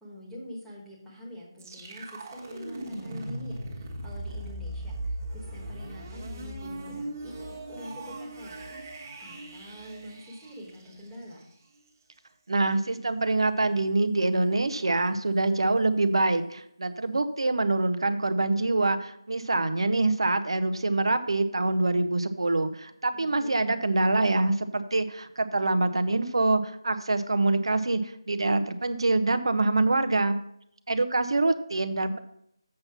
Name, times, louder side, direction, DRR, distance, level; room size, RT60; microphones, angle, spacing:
voice 1, 0.0-11.4 23.1-24.3, left 1 dB, ahead, -6 dB, 1.2 m, -45 dB
sound 1, 1.6-11.4, right 1 dB, 25° right, 1.4 m, -39 dB
voice 2, 12.5-30.4 30.9-32.2, right 2 dB, 75° right, 10 dB, 0.8 m, -25 dB
7.6 x 5.7 x 5.8 m, 0.72 s
figure-of-eight pair, 170°, 3 cm